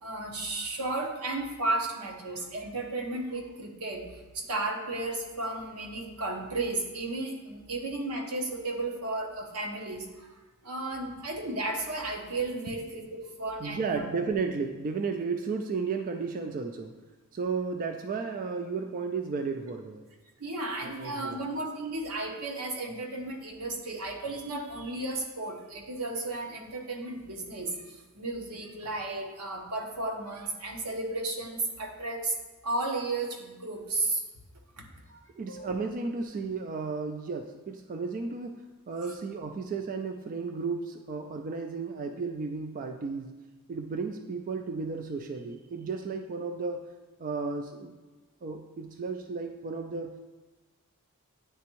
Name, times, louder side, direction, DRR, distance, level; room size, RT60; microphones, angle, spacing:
voice 1, 0.0-4.0 4.3-10.3 10.6-14.1 20.4-32.3 32.6-34.2 34.8-34.9 35.1-35.2 35.5-35.7 39.0-39.1, right 2 dB, 85° right, 1 dB, 1.0 m, -34 dB
voice 2, 13.6-16.9 17.3-20.1 20.8-21.4 35.4-43.3 43.7-46.9 47.2-47.9 48.4-50.2, right 4 dB, 40° right, 5 dB, 0.3 m, -33 dB
9.3 x 3.4 x 3.0 m, 1.2 s
head